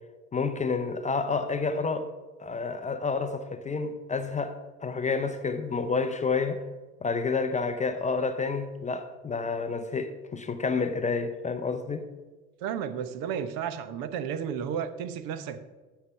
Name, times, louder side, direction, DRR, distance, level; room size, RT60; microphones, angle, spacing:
voice 1, 0.3-2.1 2.4-6.6 7.0-12.1, left 4 dB, 15° left, 0.6 m, -29 dB
voice 2, 12.6-15.6, right 8 dB, 50° right, 1.0 m, -32 dB
9.4 x 6.6 x 5.6 m
figure-of-eight pair, 70°, 44 cm